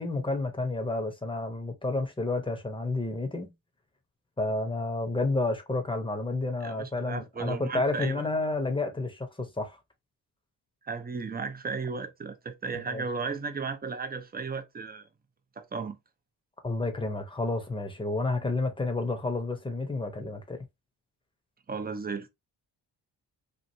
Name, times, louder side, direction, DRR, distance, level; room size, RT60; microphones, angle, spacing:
voice 1, 0.0-3.5 4.4-9.8 12.9-13.0 16.6-20.6, left 2 dB, 10° left, 0.8 m, -30 dB
voice 2, 6.6-8.2 10.8-15.1 15.6-16.0 21.7-22.3, right 5 dB, 20° right, 0.6 m, -35 dB
3.0 x 2.5 x 2.6 m
cardioid pair, 75°, 43 cm